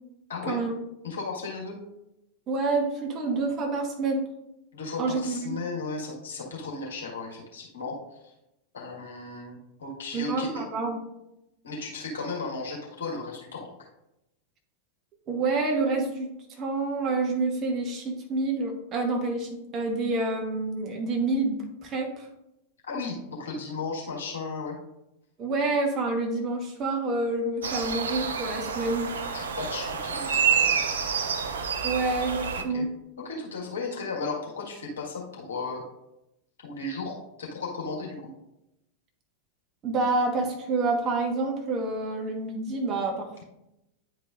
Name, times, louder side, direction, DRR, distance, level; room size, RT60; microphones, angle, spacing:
voice 1, 1.0-1.8 4.7-8.0 8.7-10.6 11.6-13.7 22.8-24.8 29.3-30.8 32.5-32.9 33.2-35.8 36.6-38.3, left 3 dB, 65° left, -2 dB, 1.6 m, -35 dB
voice 2, 2.5-4.2 5.0-5.6 10.1-11.0 15.3-16.3 16.6-22.3 25.4-29.1 31.8-32.9 39.8-43.4, right 3 dB, 30° right, 2 dB, 1.2 m, -28 dB
sound 1, 27.6-32.6, right 6 dB, 65° right, 0.6 m, -28 dB
9.5 x 4.7 x 2.5 m, 0.87 s
figure-of-eight pair, 90°, 0 cm